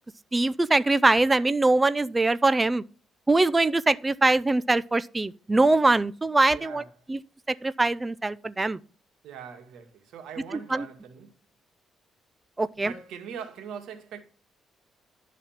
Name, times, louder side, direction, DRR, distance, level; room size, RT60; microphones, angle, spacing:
voice 1, 0.3-2.8 3.3-6.8 7.1-7.2 7.6-8.8 10.7-10.8 12.6-12.9, right 2 dB, 20° right, 0.5 m, -22 dB
voice 2, 6.5-6.9 9.2-11.3 12.8-14.2, right 7 dB, 80° right, 2.0 m, -41 dB
11.5 x 4.2 x 7.2 m
cardioid pair, 90°, 0 cm